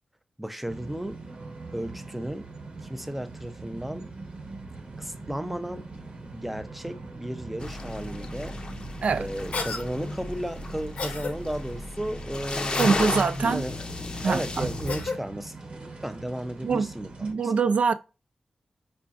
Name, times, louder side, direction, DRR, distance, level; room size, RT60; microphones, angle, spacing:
voice 1, 0.4-1.3 1.7-2.6 2.8-4.2 5.0-5.9 6.3-8.6 9.2-13.0 13.5-13.9 14.2-17.5, right 1 dB, 5° right, 0.4 m, -34 dB
sound 1, 0.6-17.3, right 3 dB, 50° right, 0.8 m, -42 dB
sound 2, 7.6-15.0, left 2 dB, 40° left, 0.5 m, -34 dB
Cough, 9.5-9.8 11.0-11.3 12.7-13.1 14.9-15.2, left 4 dB, 80° left, 0.7 m, -32 dB
voice 2, 12.8-13.6 14.2-14.7 16.6-16.9 17.2-17.9, right 5 dB, 70° right, 0.4 m, -24 dB
4.7 x 2.5 x 2.4 m
wide cardioid pair, 110°, 2 cm